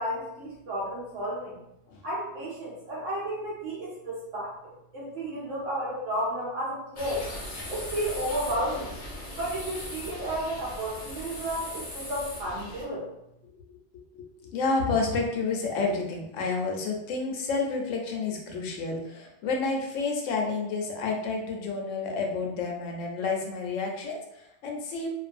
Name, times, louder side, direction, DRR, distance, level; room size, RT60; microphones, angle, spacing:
voice 1, 0.0-1.6 2.0-7.3 7.7-8.9 9.3-13.0, right 1 dB, 75° right, -7 dB, 1.0 m, -32 dB
sound 1, 7.0-12.8, left 1 dB, 40° left, 0.6 m, -39 dB
voice 2, 14.1-25.1, left 4 dB, 85° left, 1 dB, 0.9 m, -30 dB
2.5 x 2.2 x 2.5 m, 0.82 s
omnidirectional pair, 1.3 m